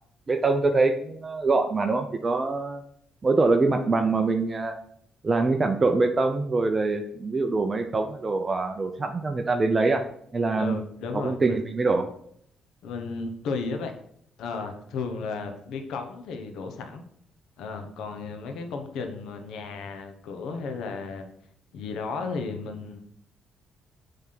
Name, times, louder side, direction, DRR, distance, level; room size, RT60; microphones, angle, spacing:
voice 1, 0.3-2.8 3.2-4.8 5.2-10.0 10.3-10.8 11.1-12.1, right 3 dB, 30° right, 5 dB, 0.7 m, -24 dB
voice 2, 10.6-11.7 12.8-13.9 14.4-17.0 17.6-21.2 21.7-23.0, left 4 dB, 85° left, 6 dB, 1.1 m, -34 dB
7.7 x 3.5 x 5.9 m, 0.66 s
cardioid pair, 90°, 0 cm